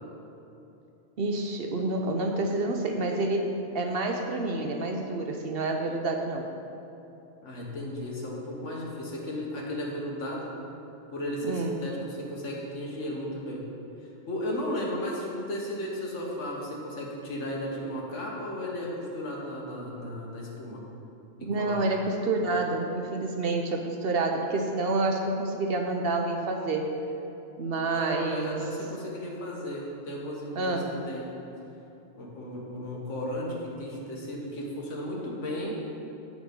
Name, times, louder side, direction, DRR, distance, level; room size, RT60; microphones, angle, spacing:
voice 1, 1.2-6.5 11.4-11.8 21.4-26.9 27.6-28.7 30.6-30.9, right 2 dB, 60° right, 3 dB, 0.8 m, -28 dB
voice 2, 7.4-10.5 11.1-13.7 14.3-20.8 21.4-21.9 27.8-31.3 32.1-35.8, left 1 dB, 80° left, -2 dB, 1.8 m, -35 dB
8.4 x 6.2 x 5.2 m, 2.9 s
omnidirectional pair, 1.2 m